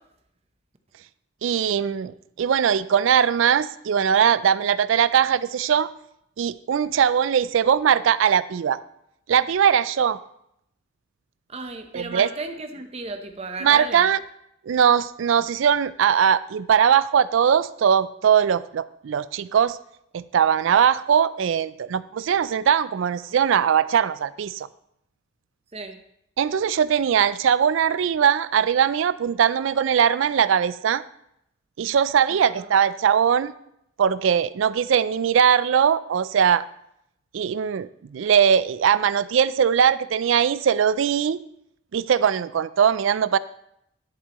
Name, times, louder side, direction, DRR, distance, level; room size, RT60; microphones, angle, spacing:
voice 1, 1.4-5.9 6.4-8.8 9.3-10.2 11.9-12.3 13.6-14.2 14.7-19.8 20.1-24.7 26.4-31.0 31.8-33.5 34.0-36.6 37.3-41.4 41.9-43.4, right 8 dB, 65° right, 17 dB, 0.3 m, -20 dB
voice 2, 11.5-14.1 25.7-26.0 32.4-32.7, right 3 dB, 30° right, 6 dB, 0.8 m, -34 dB
10.5 x 8.2 x 3.0 m, 0.76 s
head